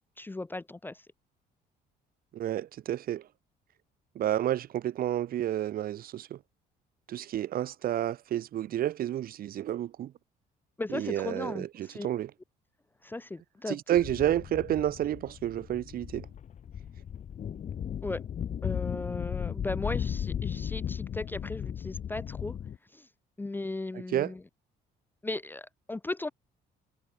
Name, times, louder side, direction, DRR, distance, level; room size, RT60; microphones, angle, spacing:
voice 1, 0.2-1.0 10.8-12.1 13.0-13.8 18.0-18.2 18.6-22.5 22.9-23.1 23.4-24.4 25.2-26.3, left 2 dB, 10° left, 0.6 m, -36 dB
voice 2, 2.3-3.3 4.2-6.4 7.1-10.1 10.9-12.3 13.7-16.3 23.9-24.3, right 12 dB, 60° right, 1.8 m, -30 dB
sound 1, 13.9-22.8, left 8 dB, 45° left, 2.1 m, -36 dB
cardioid pair, 110°, 17 cm